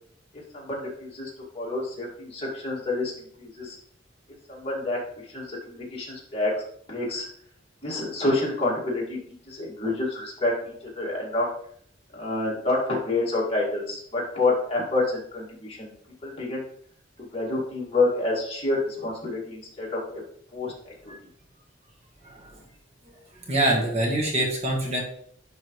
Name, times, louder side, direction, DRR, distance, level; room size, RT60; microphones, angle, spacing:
voice 1, 0.3-1.3 1.5-3.8 4.5-6.6 6.9-7.3 7.8-9.2 9.5-11.5 12.1-15.9 16.2-16.6 17.3-20.2 20.5-21.1, left 2 dB, 30° left, -4 dB, 2.2 m, -28 dB
voice 2, 23.5-25.0, right 1 dB, 35° right, -1 dB, 1.4 m, -24 dB
10.5 x 3.9 x 3.1 m, 0.63 s
head